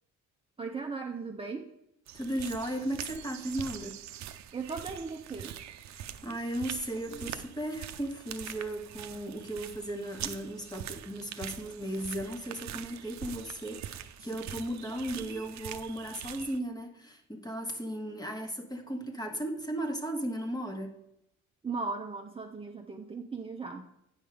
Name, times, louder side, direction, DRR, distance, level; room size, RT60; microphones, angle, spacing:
voice 1, 0.6-1.7 4.5-5.6 21.6-23.8, right 4 dB, 20° right, 1 dB, 0.7 m, -37 dB
voice 2, 2.1-4.0 5.9-21.0, right 1 dB, 15° left, 5 dB, 1.4 m, -36 dB
sound 1, 2.1-16.6, right 10 dB, 65° right, 0.6 m, -43 dB
9.1 x 5.4 x 4.9 m, 0.80 s
cardioid pair, 90°, 30 cm